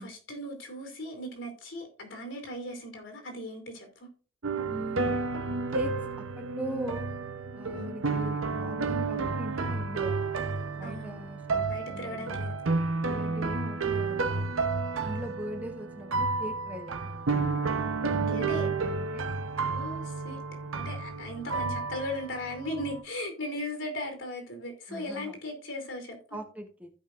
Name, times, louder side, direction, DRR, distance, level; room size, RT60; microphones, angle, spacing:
voice 1, 0.0-4.1 7.7-7.9 10.8-11.2 11.6-12.6 14.9-15.4 18.0-18.7 19.7-20.4 20.8-26.4, left 1 dB, 65° left, 2.9 m, -38 dB
sound 1, 4.4-23.0, right 4 dB, 75° right, 0.8 m, -31 dB
voice 2, 4.6-5.2 5.7-7.1 7.5-10.4 10.8-12.5 13.1-14.5 15.0-17.6 18.1-19.2 24.9-25.4 26.3-26.9, right 1 dB, 5° right, 1.0 m, -41 dB
15.5 x 5.4 x 2.5 m
head